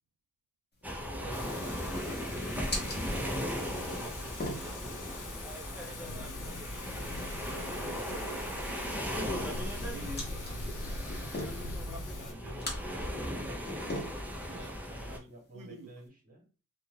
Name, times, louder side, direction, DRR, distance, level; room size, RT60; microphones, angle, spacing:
sound 1, 0.7-16.1, left 1 dB, 30° left, 0.9 m, -45 dB
sound 2, 0.8-15.2, equal, 5° right, 0.6 m, -37 dB
voice 1, 1.0-2.5 2.8-5.1 5.5-8.2 12.0-14.0 14.2-16.4, right 1 dB, 25° right, 1.2 m, -51 dB
Thunder / Rain, 1.3-12.3, left 2 dB, 75° left, 0.6 m, -43 dB
voice 2, 7.5-9.5 9.9-11.4 14.5-14.7 15.5-15.9, right 6 dB, 80° right, 0.5 m, -49 dB
2.5 x 2.3 x 3.1 m
wide cardioid pair, 90°, 31 cm